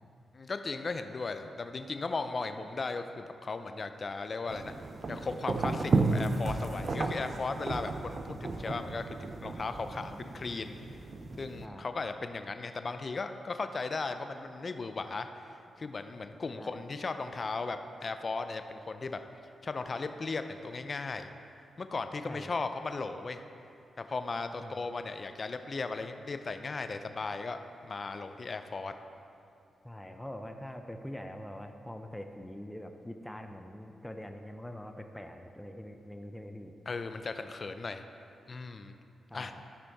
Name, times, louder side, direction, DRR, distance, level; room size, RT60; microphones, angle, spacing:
voice 1, 0.3-4.7 5.1-10.8 11.4-19.2 19.6-21.3 21.8-23.4 24.0-28.9 36.9-38.0 38.5-38.9 39.3-39.5, left 3 dB, 50° left, 8 dB, 0.6 m, -37 dB
sound 1, 4.5-11.7, right 3 dB, 55° right, 0.6 m, -33 dB
voice 2, 22.3-22.6 24.6-24.8 29.8-36.7 39.3-39.6, left 1 dB, 10° left, 5 dB, 0.7 m, -44 dB
13.0 x 5.6 x 4.1 m, 2.5 s
supercardioid pair, 50°, 0 cm